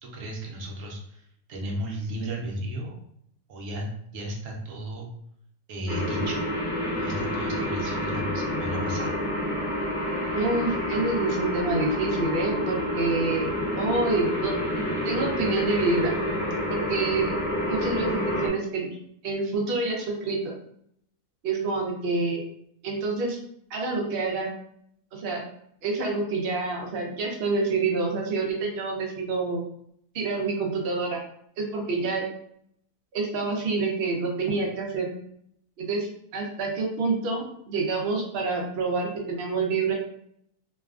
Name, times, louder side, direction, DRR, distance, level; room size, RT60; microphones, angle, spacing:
voice 1, 0.0-3.0 3.5-5.1 5.7-6.4 6.9-9.1, right 1 dB, 65° right, -1 dB, 0.8 m, -34 dB
sound 1, 5.9-18.5, left 1 dB, 70° left, 0.4 m, -28 dB
voice 2, 10.3-14.6 15.0-16.1 16.7-17.3 17.7-18.9 19.2-20.5 21.4-22.4 22.8-23.4 23.7-24.5 25.1-25.4 25.8-29.6 30.1-31.2 31.6-32.2 33.1-35.1 35.8-39.9, right 3 dB, 80° right, 0 dB, 0.5 m, -27 dB
2.7 x 2.3 x 2.3 m, 0.70 s
omnidirectional pair, 1.7 m